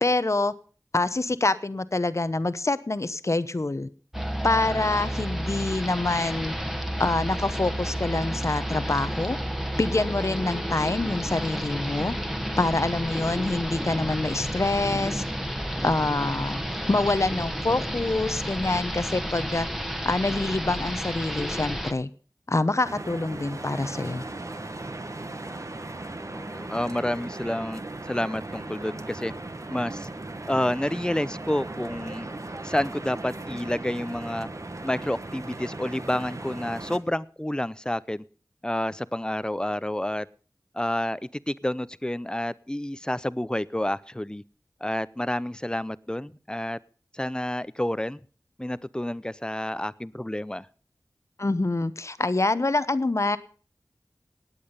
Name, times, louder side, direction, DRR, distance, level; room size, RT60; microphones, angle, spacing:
voice 1, 0.0-0.5 0.9-3.9 4.4-6.5 7.0-9.4 9.8-12.1 12.6-15.2 15.8-16.6 16.9-19.7 20.0-22.1 22.5-24.2 51.4-53.4, left 2 dB, 45° left, 14 dB, 0.9 m, -26 dB
sound 1, 4.1-21.9, equal, 5° right, 1.5 m, -31 dB
sound 2, 22.8-37.0, right 2 dB, 50° right, 1.3 m, -37 dB
voice 2, 26.2-27.8 28.1-29.3 29.7-30.1 30.5-32.3 32.6-34.5 34.8-38.2 38.6-40.3 40.7-44.4 44.8-46.8 47.1-48.2 48.6-50.7, left 1 dB, 10° left, 18 dB, 0.6 m, -29 dB
19.0 x 8.5 x 5.4 m, 0.41 s
wide cardioid pair, 60°, 7 cm